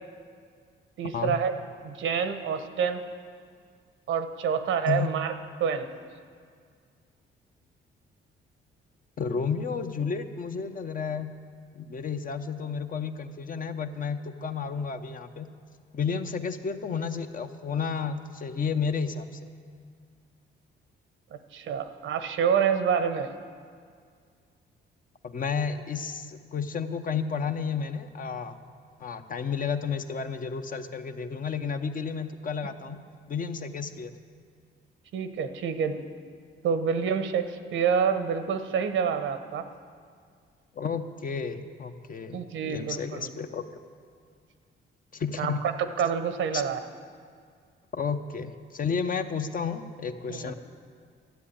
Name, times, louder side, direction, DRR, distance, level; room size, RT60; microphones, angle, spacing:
voice 1, 1.0-1.6 1.8-3.0 4.1-5.3 5.6-5.9 21.5-23.3 35.1-36.0 36.6-39.7 42.3-43.3 45.4-46.8 50.3-50.5, right 7 dB, 75° right, 9 dB, 0.9 m, -27 dB
voice 2, 9.2-11.3 11.7-15.5 15.9-19.5 25.2-28.6 29.0-33.0 33.3-34.1 40.8-43.6 45.1-45.6 46.5-46.6 47.9-50.5, left 6 dB, 45° left, 8 dB, 0.8 m, -32 dB
12.5 x 7.8 x 8.6 m, 2.1 s
cardioid pair, 90°, 20 cm